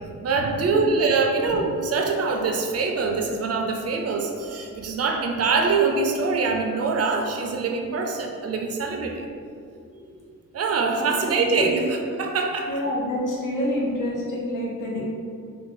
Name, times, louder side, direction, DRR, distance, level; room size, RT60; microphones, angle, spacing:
voice 1, 0.2-9.3 10.5-11.8 12.2-12.7, right 4 dB, 50° right, 2 dB, 0.4 m, -24 dB
voice 2, 9.7-10.1 11.0-11.7 12.7-15.0, left 1 dB, 75° left, -4 dB, 1.0 m, -28 dB
3.6 x 2.3 x 3.8 m, 2.3 s
wide cardioid pair, 150°, 32 cm